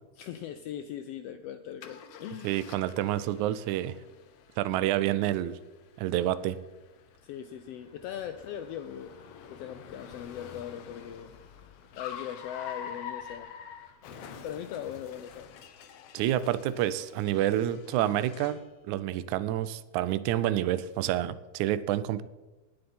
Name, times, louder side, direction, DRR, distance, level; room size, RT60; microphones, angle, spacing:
voice 1, 0.2-2.5 7.2-9.1 9.5-11.3 12.0-13.5 14.4-15.5, left 10 dB, 85° left, 9 dB, 1.4 m, -40 dB
Car, 1.8-18.7, left 7 dB, 65° left, 1.7 m, -47 dB
voice 2, 2.4-4.0 4.6-5.6 6.0-6.6 16.1-18.6 18.8-22.2, right 13 dB, 85° right, 15 dB, 2.0 m, -28 dB
19.0 x 7.7 x 4.2 m, 1.2 s
omnidirectional pair, 3.3 m